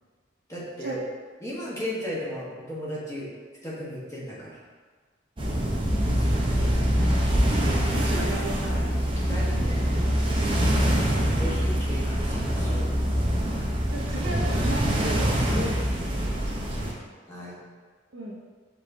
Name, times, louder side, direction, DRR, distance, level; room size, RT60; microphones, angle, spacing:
voice 1, 0.5-1.0 1.4-3.3 3.6-4.6 6.1-6.5 9.3-10.0 10.3-10.9 11.4-12.9 17.3-17.6, equal, 15° left, -7 dB, 1.1 m, -36 dB
sound 1, 5.4-16.9, equal, 25° right, 0.6 m, -24 dB
voice 2, 6.5-8.9 9.3-9.7 10.3-10.7 13.9-17.1 18.1-18.3, right 1 dB, 70° right, -4 dB, 0.6 m, -37 dB
5.1 x 3.8 x 2.7 m, 1.5 s
head